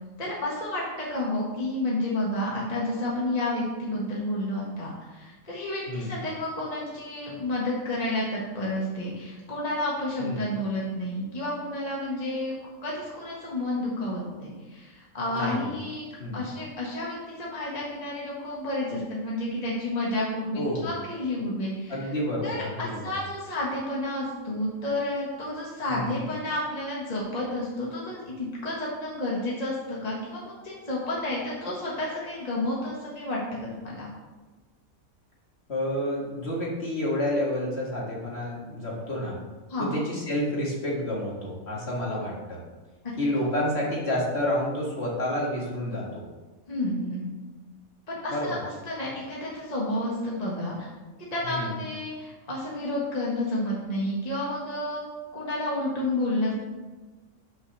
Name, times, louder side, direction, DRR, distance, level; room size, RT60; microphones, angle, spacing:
voice 1, 0.2-12.5 12.8-16.1 16.3-22.0 22.4-34.1 39.7-40.0 46.7-47.2 48.1-48.6 48.9-50.9 51.3-55.0 55.3-56.5, left 1 dB, 30° left, -5 dB, 1.6 m, -30 dB
voice 2, 5.9-6.2 10.2-10.5 15.3-15.7 16.2-16.5 20.5-20.9 21.9-23.0 25.9-26.3 35.7-39.4 39.8-42.6 43.2-46.2 48.3-48.6 51.4-51.8, left 1 dB, 50° left, -4 dB, 2.1 m, -29 dB
6.0 x 5.4 x 6.5 m, 1.3 s
omnidirectional pair, 1.4 m